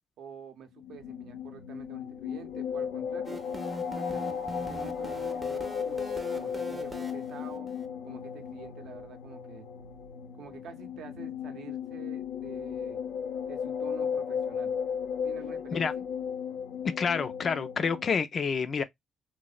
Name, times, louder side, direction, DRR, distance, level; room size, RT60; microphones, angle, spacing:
voice 1, 0.2-3.4 3.9-7.7 8.0-9.7 10.4-13.0 13.5-14.8 15.2-16.0, right 7 dB, 75° right, 0.6 m, -48 dB
sound 1, 0.7-18.1, left 7 dB, 80° left, 0.6 m, -35 dB
sound 2, 3.2-7.9, right 1 dB, 20° right, 0.5 m, -42 dB
voice 2, 17.0-18.8, left 5 dB, 45° left, 0.3 m, -28 dB
2.7 x 2.0 x 2.3 m
cardioid pair, 90°, 0 cm